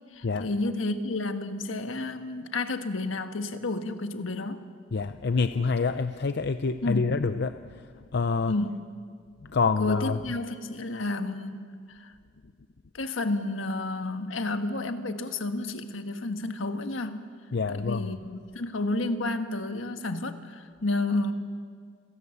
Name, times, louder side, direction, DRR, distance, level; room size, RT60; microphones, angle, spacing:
voice 1, 0.1-4.7 6.8-7.2 8.5-8.8 9.8-12.1 12.9-17.3 17.7-21.3, left 2 dB, 75° left, 8 dB, 1.4 m, -31 dB
voice 2, 4.9-7.9 8.1-8.5 9.5-10.2 17.5-18.1, left 4 dB, 60° left, 10 dB, 0.6 m, -27 dB
28.5 x 17.5 x 7.1 m, 2.1 s
head